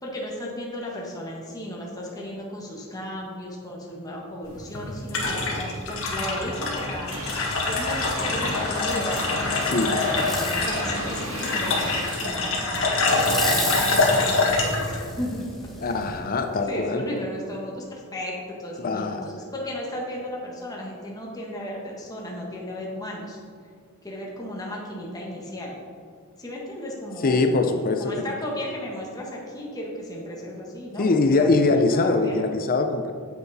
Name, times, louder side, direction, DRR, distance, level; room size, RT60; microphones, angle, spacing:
voice 1, 0.0-9.3 9.6-15.5 16.7-23.4 24.0-25.7 26.4-31.6 31.9-32.4, left 1 dB, 15° left, -3 dB, 1.5 m, -35 dB
sound 1, 4.4-16.2, left 3 dB, 65° left, 1.8 m, -25 dB
sound 2, 7.1-12.2, right 1 dB, 65° right, 1.8 m, -34 dB
voice 2, 9.6-10.0 15.8-17.1 18.8-19.3 27.2-28.2 31.0-33.1, left 3 dB, 40° left, 6 dB, 0.5 m, -22 dB
Fireworks, 10.1-10.7 11.2-12.3 13.1-15.4 16.0-16.1, left 1 dB, ahead, 1.0 m, -34 dB
9.4 x 8.1 x 4.1 m, 2.2 s
head